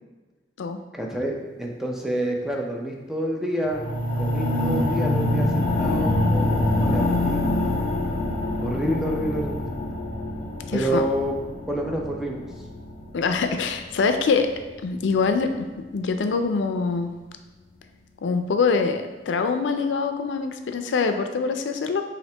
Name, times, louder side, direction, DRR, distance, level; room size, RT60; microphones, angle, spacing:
voice 1, 0.9-3.9 4.2-7.8 8.6-9.7 10.7-11.4 11.7-12.4, right 1 dB, ahead, 0 dB, 0.5 m, -28 dB
sound 1, 3.6-13.8 14.4-14.5, left 1 dB, 50° left, 1.0 m, -25 dB
voice 2, 10.7-11.0 13.1-14.5 14.8-15.7 15.9-17.1 18.2-22.0, left 4 dB, 90° left, 7 dB, 0.4 m, -24 dB
5.6 x 2.5 x 3.3 m, 1.3 s
head